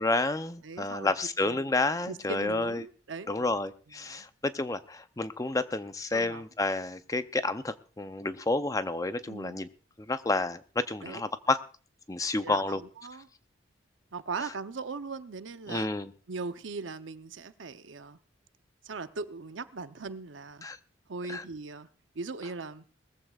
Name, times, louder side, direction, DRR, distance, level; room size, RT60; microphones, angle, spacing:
voice 1, 0.0-2.9 3.3-9.7 10.1-11.6 12.1-12.8 15.7-16.1 20.6-20.8 21.3-21.4, left 2 dB, 20° left, 0.6 m, -30 dB
voice 2, 0.6-1.1 1.4-1.7 2.1-3.6 4.0-4.3 6.1-6.4 9.3-9.6 11.0-11.2 12.4-13.3 14.1-15.9 16.3-18.2 18.8-20.7 21.1-21.9 22.1-22.8, right 4 dB, 85° right, 0.8 m, -39 dB
20.0 x 14.5 x 2.4 m
head